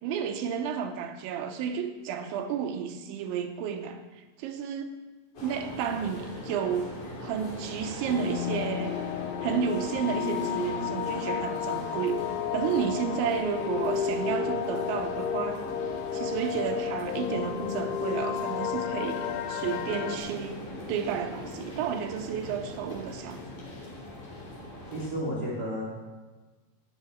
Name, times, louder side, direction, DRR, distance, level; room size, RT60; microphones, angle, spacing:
voice 1, 0.0-5.0 5.4-9.0 9.4-12.3 12.5-15.6 16.1-20.6 20.9-23.4, right 7 dB, 80° right, 6 dB, 2.9 m, -32 dB
sound 1, 5.3-25.1, left 1 dB, 45° left, 3.9 m, -41 dB
sound 2, 8.1-20.2, left 8 dB, 90° left, 2.3 m, -32 dB
voice 2, 24.9-25.8, equal, 50° right, -4 dB, 1.2 m, -32 dB
9.1 x 8.3 x 9.1 m, 1.3 s
omnidirectional pair, 5.7 m